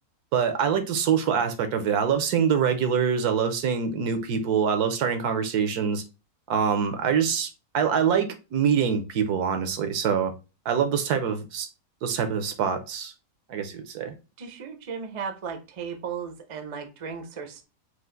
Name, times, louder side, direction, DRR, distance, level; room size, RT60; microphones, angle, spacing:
voice 1, 0.3-6.0 6.5-10.3 10.7-11.7 12.0-13.1 13.5-14.1, right 7 dB, 80° right, 1.3 m, -25 dB
voice 2, 14.4-17.6, right 6 dB, 45° right, 0.4 m, -35 dB
4.7 x 2.5 x 3.7 m
omnidirectional pair, 1.7 m